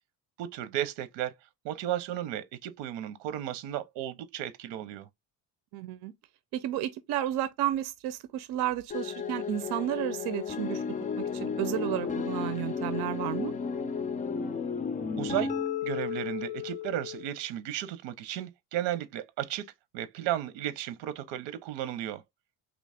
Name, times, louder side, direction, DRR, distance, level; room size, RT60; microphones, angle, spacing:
voice 1, 0.4-1.3 1.6-5.1 15.2-15.5 15.8-19.7 19.9-22.2, right 12 dB, 90° right, 1.0 m, -34 dB
voice 2, 5.7-6.1 6.5-10.8 11.2-13.5, right 13 dB, 65° right, 0.6 m, -32 dB
sound 1, 8.9-17.3, left 6 dB, 20° left, 0.3 m, -33 dB
3.9 x 3.1 x 3.4 m
cardioid pair, 150°, 43 cm